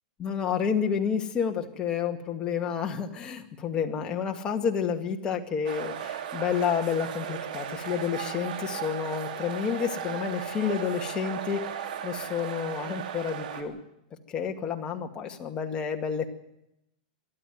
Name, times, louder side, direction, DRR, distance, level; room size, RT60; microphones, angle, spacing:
voice 1, 0.2-13.8 14.3-16.3, left 7 dB, 20° left, 3 dB, 2.2 m, -30 dB
sound 1, 5.6-13.6, right 9 dB, 70° right, 3.2 m, -36 dB
23.0 x 13.0 x 9.5 m, 0.82 s
supercardioid pair, 155°, 5 cm